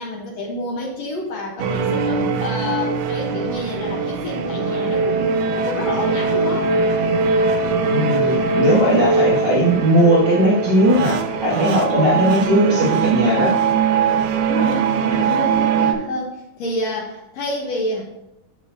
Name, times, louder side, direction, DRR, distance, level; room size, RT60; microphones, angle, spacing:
voice 1, 0.0-6.7 14.5-18.0, left 1 dB, 75° left, -1 dB, 1.5 m, -28 dB
sound 1, 1.6-15.9, right 5 dB, 90° right, 1.9 m, -21 dB
voice 2, 7.9-13.5, equal, 70° right, -6 dB, 1.0 m, -18 dB
8.9 x 6.7 x 2.7 m, 0.91 s
omnidirectional pair, 4.3 m